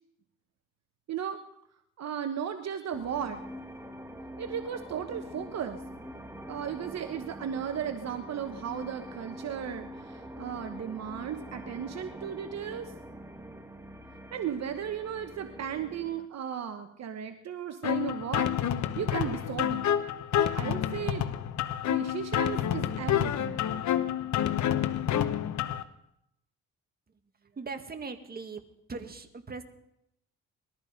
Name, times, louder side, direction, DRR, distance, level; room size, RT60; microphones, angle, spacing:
voice 1, 1.1-1.4 2.0-3.4 4.4-5.8 6.5-12.9 14.3-18.6 18.9-19.9 20.5-21.3 21.8-23.6, right 8 dB, 60° right, 8 dB, 1.2 m, -35 dB
sound 1, 2.9-16.3, equal, 10° right, 1.5 m, -44 dB
sound 2, 17.8-25.8, left 10 dB, 70° left, 1.1 m, -28 dB
voice 2, 27.4-28.6 28.9-29.6, right 4 dB, 30° right, 7 dB, 1.9 m, -40 dB
20.5 x 13.5 x 5.2 m, 0.80 s
cardioid pair, 90°, 30 cm